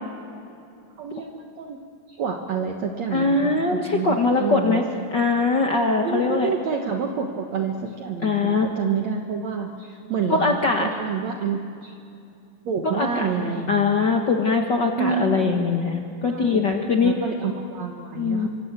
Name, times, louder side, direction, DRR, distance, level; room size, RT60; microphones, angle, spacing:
voice 1, 1.0-1.8 2.2-4.8 6.0-12.0 12.7-13.9 15.0-15.6 16.3-16.6 17.0-18.5, right 6 dB, 60° right, 3 dB, 2.2 m, -28 dB
voice 2, 3.1-4.8 5.1-6.5 8.2-8.7 10.3-10.9 12.8-17.1 18.1-18.5, left 4 dB, 60° left, 3 dB, 1.1 m, -22 dB
26.5 x 25.5 x 8.2 m, 2.5 s
omnidirectional pair, 4.2 m